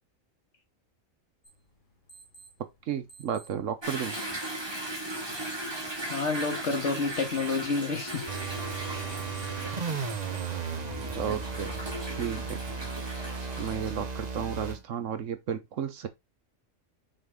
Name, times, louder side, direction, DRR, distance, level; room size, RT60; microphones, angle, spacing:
sound 1, 1.4-10.8, right 3 dB, 35° left, 2.2 m, -55 dB
voice 1, 2.9-4.2 11.1-11.7 12.2-12.6 13.6-16.1, right 8 dB, 65° right, 1.2 m, -33 dB
Toilet flush / Drip / Trickle dribble, 3.8-13.9, right 1 dB, 20° right, 1.9 m, -37 dB
voice 2, 6.1-8.2, left 4 dB, 55° left, 1.9 m, -29 dB
sound 2, 8.3-14.8, right 5 dB, 35° right, 0.9 m, -35 dB
6.4 x 4.5 x 3.7 m
omnidirectional pair, 1.4 m